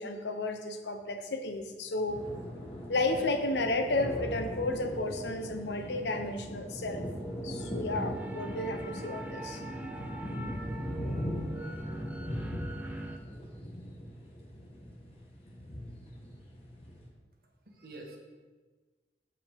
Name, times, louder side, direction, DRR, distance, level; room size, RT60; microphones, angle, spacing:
voice 1, 0.0-2.2 2.9-7.1 7.4-9.6, left 2 dB, 80° left, 6 dB, 0.8 m, -32 dB
sound 1, 2.1-17.1, equal, 35° left, 1.3 m, -40 dB
sound 2, 6.9-13.2, right 2 dB, 10° right, 0.6 m, -42 dB
voice 2, 17.4-18.2, right 2 dB, 55° right, 1 dB, 1.4 m, -48 dB
14.5 x 4.8 x 3.6 m, 1.3 s
head